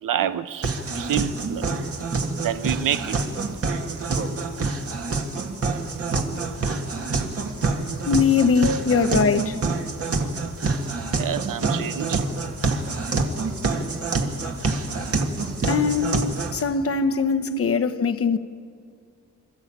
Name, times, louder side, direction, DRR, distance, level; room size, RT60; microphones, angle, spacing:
voice 1, 0.0-1.7 2.4-3.2 8.4-9.1 11.1-12.2 17.2-17.7, right 10 dB, 80° right, 0.9 m, -28 dB
sound 1, 0.6-16.6, right 3 dB, 45° right, 2.0 m, -26 dB
voice 2, 8.1-9.6 15.7-16.2 16.5-18.4, left 6 dB, 45° left, 1.0 m, -21 dB
28.0 x 13.5 x 8.7 m
wide cardioid pair, 135°, 33 cm